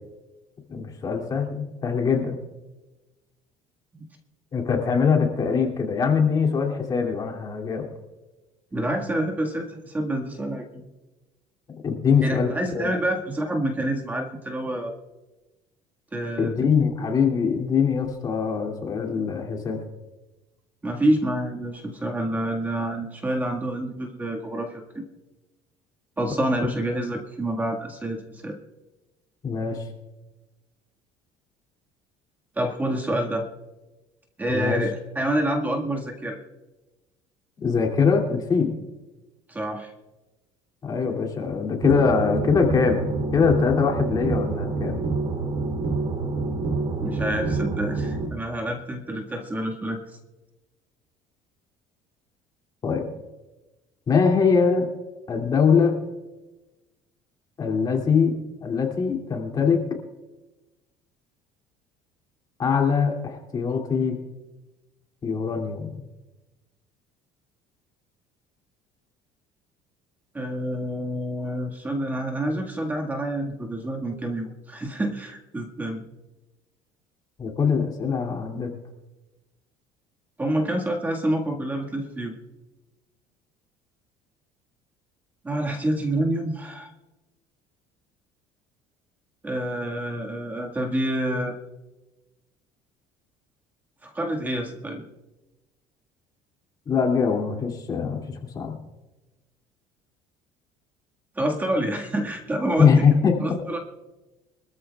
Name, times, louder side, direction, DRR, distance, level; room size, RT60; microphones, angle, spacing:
voice 1, 0.7-2.4 4.5-7.9 11.8-12.9 16.4-19.8 29.4-29.8 34.5-34.8 37.6-38.7 40.8-45.0 52.8-53.1 54.1-54.9 55.3-56.0 57.6-58.3 58.6-59.8 62.6-64.2 65.2-66.0 77.4-78.7 96.9-98.8 102.8-103.4, left 6 dB, 35° left, 2 dB, 2.6 m, -22 dB
voice 2, 8.7-10.8 12.2-14.9 16.1-16.6 20.8-25.1 26.2-28.6 32.6-33.5 34.4-36.4 39.5-39.9 47.0-50.0 70.3-76.0 80.4-82.3 85.4-86.9 89.4-91.6 94.0-95.0 101.4-103.1 103.4-103.8, right 1 dB, 15° right, 1 dB, 1.7 m, -27 dB
sound 1, 41.8-48.3, right 3 dB, 50° right, 3.1 m, -27 dB
24.5 x 14.0 x 2.4 m, 1.1 s
cardioid pair, 125°, 12 cm